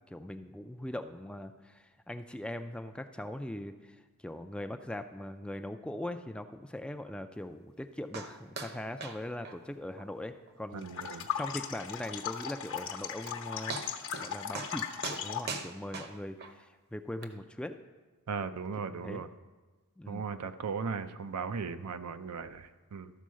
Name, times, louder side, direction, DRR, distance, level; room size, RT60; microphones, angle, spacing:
voice 1, 0.1-13.8 14.2-17.8 18.8-19.2 20.0-20.3, left 1 dB, 5° left, 7 dB, 0.3 m, -41 dB
sound 1, 8.1-8.3 8.6-8.7 9.0-9.2 9.4-9.6 10.0-10.1 10.5-10.6 11.0-11.1 12.8-12.9 13.3-13.4 13.7-14.3 14.5-14.7 15.0-16.5 17.2-17.3, right 4 dB, 45° right, 0.8 m, -39 dB
voice 2, 10.7-11.3 18.3-19.3 20.1-23.1, right 5 dB, 85° right, 10 dB, 0.5 m, -37 dB
sound 2, 10.8-15.6, left 8 dB, 55° left, 0.9 m, -38 dB
13.0 x 4.6 x 6.2 m, 1.3 s
head